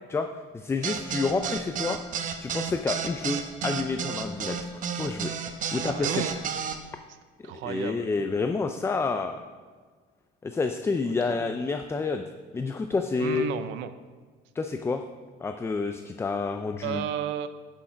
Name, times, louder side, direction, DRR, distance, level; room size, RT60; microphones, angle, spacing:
voice 1, 0.5-2.0 2.4-5.3 5.7-6.3 7.6-9.4 10.4-12.2 12.5-13.5 14.6-15.0 15.4-17.1, left 4 dB, 15° left, 7 dB, 0.4 m, -29 dB
sound 1, 0.8-6.8, right 7 dB, 45° right, 0.9 m, -31 dB
voice 2, 5.9-6.4 7.4-8.1 11.1-11.5 13.2-13.9 16.8-17.5, right 10 dB, 75° right, 12 dB, 0.6 m, -33 dB
10.0 x 6.4 x 5.1 m, 1.5 s
cardioid pair, 135°, 19 cm